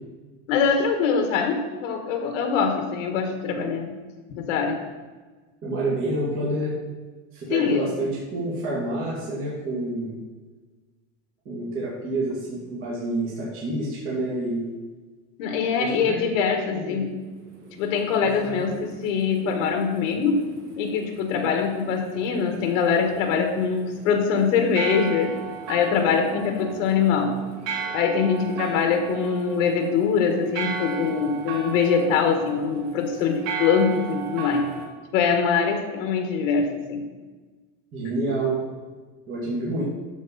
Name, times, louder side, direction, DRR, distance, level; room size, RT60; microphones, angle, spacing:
voice 1, 0.5-3.9 4.4-4.7 7.5-7.9 15.4-17.1 17.8-20.4 20.8-25.3 25.7-27.4 27.9-34.7 35.1-37.0, left 6 dB, 85° left, 4 dB, 1.6 m, -23 dB
voice 2, 5.6-6.8 7.3-10.1 11.5-14.7 15.8-15.9 16.3-17.0 18.2-18.6 37.9-38.6 39.3-39.8, right 2 dB, 35° right, -7 dB, 2.3 m, -28 dB
sound 1, 17.2-34.9, right 5 dB, 80° right, 2.0 m, -37 dB
13.5 x 4.7 x 4.1 m, 1.3 s
cardioid pair, 175°, 38 cm